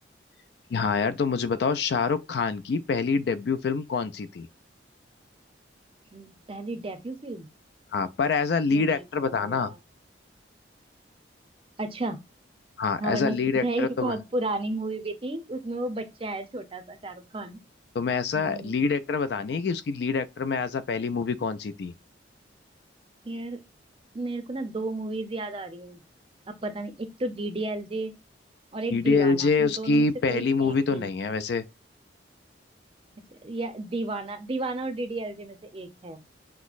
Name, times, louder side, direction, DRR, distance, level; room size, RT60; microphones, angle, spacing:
voice 1, 0.7-4.5 7.9-9.7 12.8-14.2 17.9-21.9 28.9-31.6, left 4 dB, 60° left, 0.3 m, -26 dB
voice 2, 6.1-7.5 8.7-9.8 11.8-12.2 13.0-17.6 18.3-18.8 23.2-23.6 24.1-26.0 26.5-28.1 28.7-31.1 33.3-36.2, right 2 dB, 30° right, 0.5 m, -33 dB
5.9 x 2.0 x 2.4 m
head